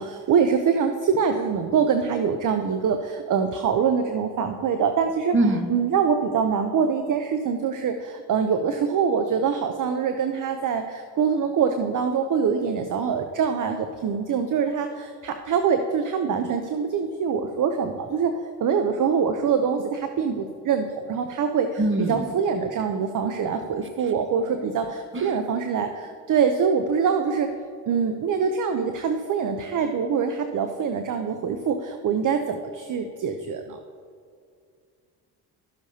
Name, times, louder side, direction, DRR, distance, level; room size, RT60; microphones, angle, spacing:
voice 1, 0.0-5.4 5.7-27.5 27.9-33.8, right 6 dB, 40° right, 7 dB, 0.7 m, -24 dB
voice 2, 5.3-5.7 21.8-22.2 25.1-25.4, right 2 dB, 25° right, 6 dB, 1.2 m, -23 dB
13.0 x 7.0 x 2.8 m, 2.2 s
hypercardioid pair, 55°, 49 cm